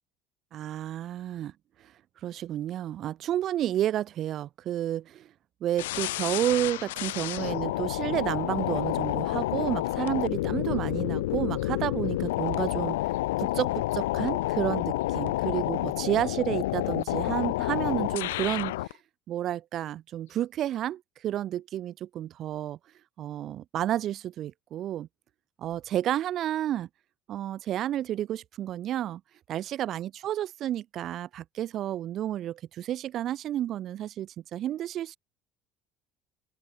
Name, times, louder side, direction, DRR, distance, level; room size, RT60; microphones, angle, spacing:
voice 1, 0.5-1.5 1.8-1.9 2.2-5.3 5.6-19.0 19.3-22.8 23.2-25.1 25.6-26.9 27.3-29.2 29.5-35.2, right 12 dB, 55° right, 3.1 m, -31 dB
sound 1, 5.8-18.9, left 17 dB, 90° left, 0.4 m, -29 dB
open air
supercardioid pair, 85°, 0 cm